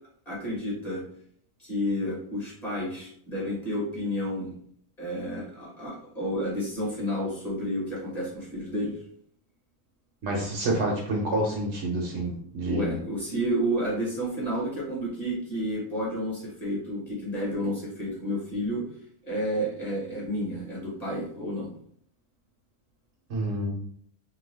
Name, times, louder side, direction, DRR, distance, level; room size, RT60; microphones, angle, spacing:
voice 1, 0.3-1.0 1.6-4.5 5.0-9.0 12.6-18.8 19.2-21.7, equal, 30° left, -6 dB, 1.1 m, -30 dB
voice 2, 10.2-13.0 23.3-23.7, right 1 dB, 60° right, -1 dB, 0.9 m, -28 dB
2.8 x 2.3 x 3.2 m, 0.63 s
omnidirectional pair, 1.4 m